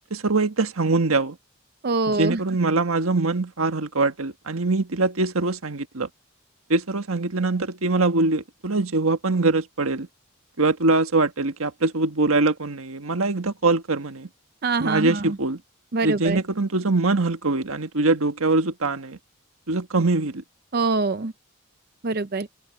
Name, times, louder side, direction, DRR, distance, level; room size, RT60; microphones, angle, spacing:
voice 1, 0.1-1.4 2.2-6.1 6.7-10.1 10.6-14.3 14.8-15.6 16.0-19.2 19.7-20.4, right 3 dB, 85° right, 1.5 m, -23 dB
voice 2, 1.8-2.4 14.6-15.4 15.9-16.4 20.7-21.3 22.0-22.5, right 3 dB, 45° right, 0.6 m, -24 dB
open air
head